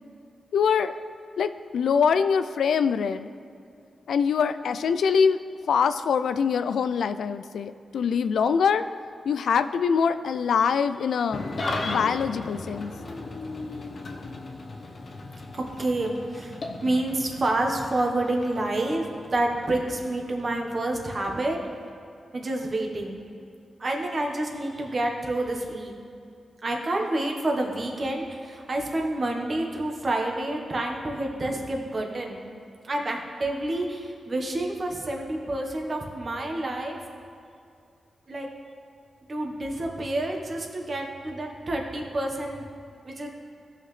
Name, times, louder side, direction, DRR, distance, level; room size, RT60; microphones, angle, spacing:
voice 1, 0.5-1.0 1.4-3.3 4.1-5.4 5.7-8.8 9.3-11.4 11.8-12.9, left 6 dB, 90° left, 11 dB, 0.3 m, -24 dB
Engine starting / Idling, 11.3-21.9, left 2 dB, 45° left, 0.9 m, -37 dB
voice 2, 15.5-19.1 19.3-21.6 22.3-23.2 23.8-25.9 26.6-32.4 32.8-37.0 38.3-38.5 39.3-42.6 43.0-43.3, right 1 dB, 40° right, 1 dB, 1.2 m, -28 dB
16.5 x 5.7 x 3.3 m, 2.5 s
wide cardioid pair, 125°, 0 cm